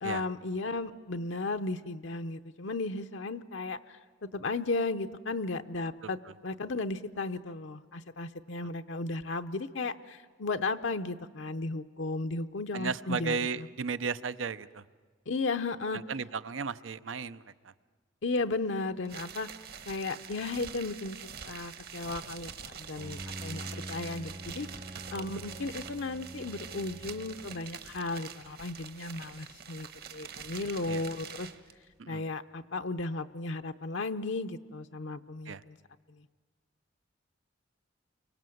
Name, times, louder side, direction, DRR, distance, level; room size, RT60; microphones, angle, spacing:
voice 1, 0.0-13.7 15.3-16.0 18.2-19.5 19.9-24.7 25.1-31.5 32.1-35.8 36.1-36.3, left 3 dB, 75° left, 8 dB, 0.7 m, -35 dB
voice 2, 12.7-14.8 15.9-17.7 25.1-25.2 30.9-31.0 32.0-32.2 35.5-35.6, right 5 dB, 85° right, 15 dB, 0.7 m, -35 dB
sound 1, 19.0-31.7, right 7 dB, 55° right, 1.3 m, -45 dB
Bowed string instrument, 23.0-27.9, right 1 dB, 30° right, 0.7 m, -45 dB
30.0 x 24.0 x 7.8 m, 1.5 s
head